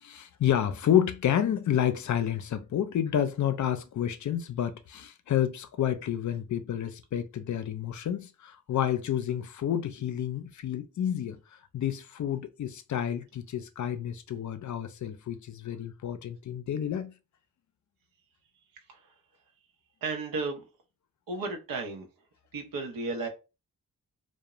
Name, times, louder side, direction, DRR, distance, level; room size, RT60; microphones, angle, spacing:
voice 1, 0.0-11.4 11.7-17.1, left 10 dB, 60° left, 0.4 m, -29 dB
voice 2, 20.0-20.6 21.3-22.1 22.5-23.3, right 3 dB, 85° right, 0.7 m, -34 dB
2.4 x 2.1 x 2.9 m
cardioid pair, 70°, 34 cm